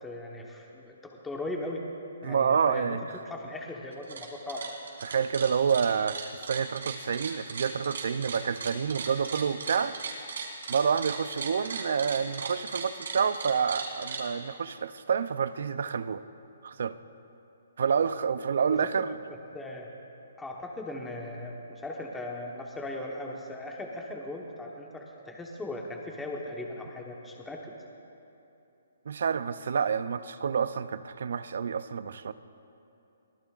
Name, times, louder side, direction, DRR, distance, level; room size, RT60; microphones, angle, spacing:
voice 1, 0.0-1.0 1.2-1.8 2.2-3.0 3.2-4.6 18.7-18.9 19.5-19.9 20.4-27.7, left 1 dB, 5° left, 0 dB, 1.1 m, -38 dB
voice 2, 2.2-3.1 5.0-10.0 10.7-16.2 16.6-17.0 17.8-19.1 29.1-32.3, right 6 dB, 60° right, 14 dB, 0.5 m, -28 dB
sound 1, 3.9-4.2 4.5-14.2, right 5 dB, 75° right, 3.1 m, -37 dB
23.0 x 18.0 x 2.5 m, 2.8 s
hypercardioid pair, 170°, 0 cm